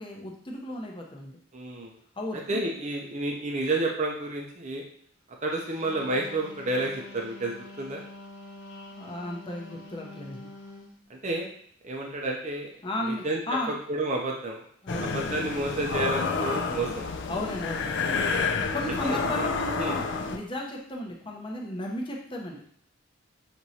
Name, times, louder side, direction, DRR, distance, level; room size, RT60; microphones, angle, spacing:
voice 1, 0.0-1.3 2.2-2.6 8.9-10.5 12.8-13.8 14.8-15.2 17.3-17.9 18.7-20.0 20.3-22.6, left 1 dB, 25° left, 0 dB, 0.7 m, -34 dB
voice 2, 1.5-2.0 2.3-4.8 5.4-8.0 11.1-11.5 11.8-12.8 13.0-13.4 13.7-14.6 15.0-17.1 18.9-19.5 19.8-20.0, right 2 dB, 35° right, 0 dB, 0.5 m, -30 dB
Wind instrument woodwind instrument, 5.7-11.0, left 2 dB, 75° left, 1.1 m, -46 dB
sound 1, 14.9-20.4, left 4 dB, 60° left, 0.4 m, -29 dB
6.1 x 3.0 x 2.7 m, 0.64 s
head